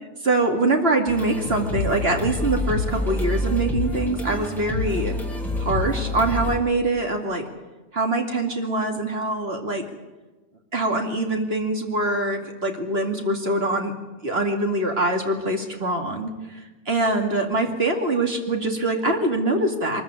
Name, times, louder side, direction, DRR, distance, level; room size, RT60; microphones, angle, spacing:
voice 1, 0.2-5.1 5.6-7.5 7.9-9.9 10.7-13.9 14.2-16.3 16.9-20.0, right 2 dB, 50° right, 3 dB, 2.7 m, -23 dB
sound 1, 1.1-6.6, left 2 dB, ahead, 3.1 m, -27 dB
23.5 x 14.5 x 9.9 m, 1.2 s
omnidirectional pair, 1.3 m